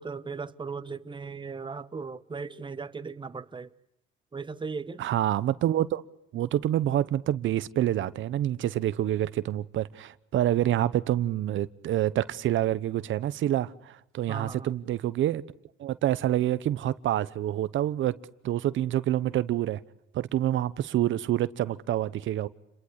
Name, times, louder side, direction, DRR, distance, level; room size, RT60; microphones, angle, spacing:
voice 1, 0.0-3.7 4.3-5.0 14.3-14.7, right 4 dB, 25° right, 1.2 m, -37 dB
voice 2, 5.0-6.0 6.3-15.4 15.8-18.2 18.4-19.8 20.1-22.5, right 12 dB, 75° right, 1.0 m, -27 dB
30.0 x 23.0 x 8.2 m
cardioid pair, 90°, 20 cm